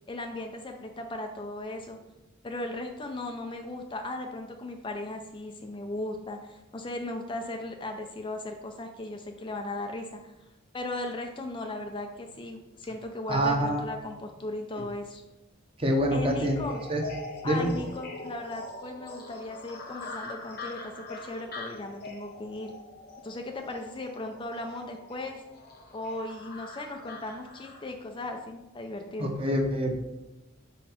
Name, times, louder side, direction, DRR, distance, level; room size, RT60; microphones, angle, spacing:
voice 1, 0.1-2.0 2.4-10.3 10.7-15.2 16.1-16.8 17.4-22.7 23.2-25.4 25.9-29.4, left 2 dB, 25° left, 4 dB, 0.4 m, -37 dB
voice 2, 13.3-13.8 15.8-16.6 16.9-17.0 17.4-17.7 29.2-29.9, equal, 30° right, 2 dB, 0.9 m, -26 dB
sound 1, 16.4-27.9, left 3 dB, 50° left, 0.9 m, -43 dB
4.5 x 4.3 x 5.7 m, 1.0 s
head